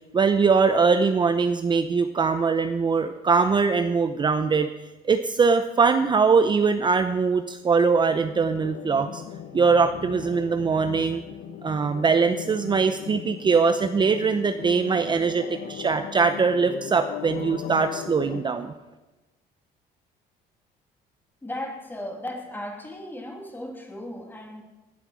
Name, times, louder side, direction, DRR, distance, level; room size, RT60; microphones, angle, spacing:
voice 1, 0.1-4.7 5.0-9.2 9.5-11.2 11.6-18.7, right 5 dB, 25° right, 9 dB, 0.7 m, -22 dB
sound 1, 8.1-18.4, left 9 dB, 70° left, 1.0 m, -38 dB
voice 2, 21.4-24.6, left 1 dB, 10° left, 2 dB, 2.9 m, -36 dB
18.0 x 8.8 x 6.2 m, 1.1 s
cardioid pair, 110°, 17 cm